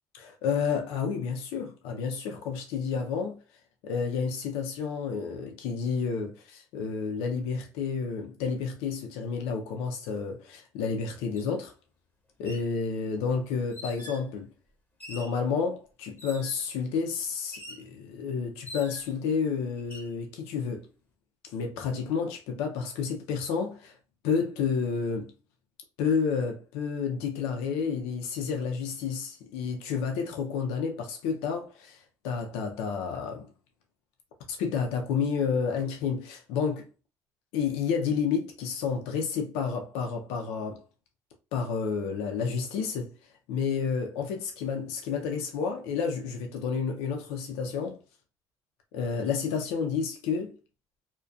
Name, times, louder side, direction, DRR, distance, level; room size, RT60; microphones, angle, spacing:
voice 1, 0.1-3.4 3.8-11.7 12.4-14.5 15.1-20.9 21.5-23.9 24.2-25.3 26.0-33.5 34.5-36.9 37.5-40.8 41.5-43.1 43.5-48.0 48.9-50.5, left 6 dB, 90° left, 0.4 m, -30 dB
sound 1, 11.4-11.5 12.3-12.7 13.7-14.3 15.0-15.4 16.2-16.6 17.5-17.9 18.7-19.2 19.8-20.1, left 1 dB, 20° left, 0.8 m, -44 dB
2.3 x 2.1 x 2.5 m
supercardioid pair, 60°, 10 cm